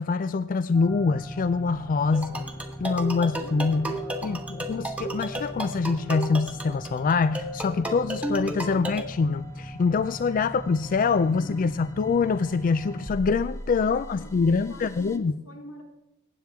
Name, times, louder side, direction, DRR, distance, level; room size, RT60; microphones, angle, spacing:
voice 1, 0.0-2.4 2.8-3.9 4.2-15.4, left 4 dB, 40° left, 13 dB, 0.3 m, -25 dB
sound 1, 0.7-15.2, equal, 15° left, 0.8 m, -40 dB
sound 2, 2.1-9.0, right 1 dB, 5° right, 1.2 m, -33 dB
voice 2, 2.2-4.5 11.2-11.6 11.8-12.1 13.8-15.8, equal, 85° left, 2 dB, 3.0 m, -48 dB
20.0 x 9.1 x 3.5 m, 0.95 s
head